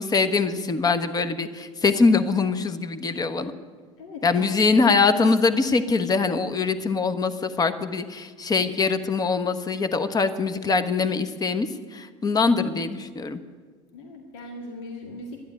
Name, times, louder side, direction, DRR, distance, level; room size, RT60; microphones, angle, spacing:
voice 1, 0.0-3.5 4.2-11.7 11.9-13.4, left 4 dB, 25° left, 10 dB, 1.2 m, -23 dB
voice 2, 4.0-4.7 12.5-12.9 13.9-15.4, left 2 dB, 75° left, 1 dB, 2.1 m, -38 dB
12.0 x 10.5 x 9.5 m, 1.5 s
hypercardioid pair, 80°, 15 cm